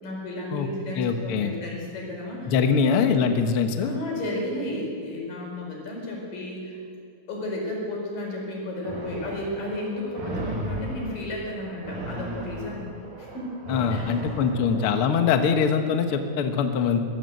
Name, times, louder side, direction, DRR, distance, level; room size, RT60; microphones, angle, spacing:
voice 1, 0.0-2.5 2.8-3.0 3.8-6.8 7.3-12.9 13.2-13.5 13.9-14.9, left 1 dB, 60° left, -2 dB, 6.3 m, -33 dB
voice 2, 1.0-1.5 2.5-3.9 13.7-17.0, left 6 dB, 80° left, 6 dB, 1.2 m, -23 dB
sound 1, 8.8-15.3, right 1 dB, 60° right, 4.9 m, -36 dB
23.0 x 15.5 x 7.8 m, 2.2 s
omnidirectional pair, 4.5 m